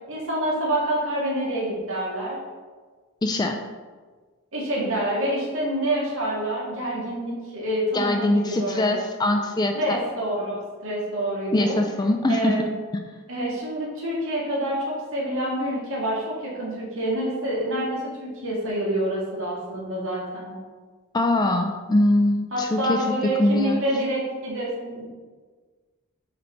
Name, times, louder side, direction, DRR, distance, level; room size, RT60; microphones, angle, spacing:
voice 1, 0.1-2.4 4.5-9.0 9.7-11.8 12.3-12.6 13.3-20.5 22.5-25.1, right 1 dB, 60° right, -5 dB, 2.0 m, -27 dB
voice 2, 3.2-3.6 7.9-10.0 11.5-12.6 21.1-23.0 23.4-23.8, left 1 dB, 20° left, 4 dB, 0.3 m, -22 dB
7.7 x 3.9 x 4.5 m, 1.4 s
head